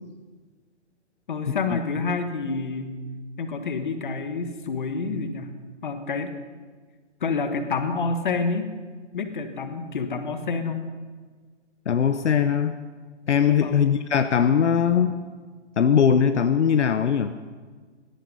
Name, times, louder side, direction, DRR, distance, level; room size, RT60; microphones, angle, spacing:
voice 1, 1.3-2.9 3.4-5.5 5.8-6.3 7.2-8.8 9.1-10.8 13.6-13.9, left 4 dB, 40° left, 8 dB, 1.4 m, -28 dB
voice 2, 11.9-12.8 13.3-15.2 15.8-17.3, left 7 dB, 70° left, 9 dB, 0.9 m, -20 dB
17.5 x 13.0 x 5.5 m, 1.5 s
hypercardioid pair, 175°, 36 cm